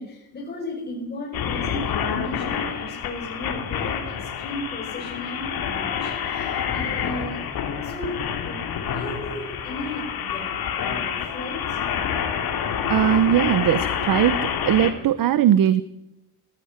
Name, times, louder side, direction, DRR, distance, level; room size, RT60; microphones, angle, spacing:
voice 1, 0.0-7.4 7.8-11.8, left 1 dB, 25° left, -4 dB, 5.4 m, -35 dB
sound 1, 1.3-14.9, left 8 dB, 70° left, 3.3 m, -28 dB
voice 2, 12.9-15.8, right 10 dB, 60° right, 14 dB, 1.0 m, -19 dB
19.5 x 15.5 x 9.8 m, 0.86 s
cardioid pair, 180°, 37 cm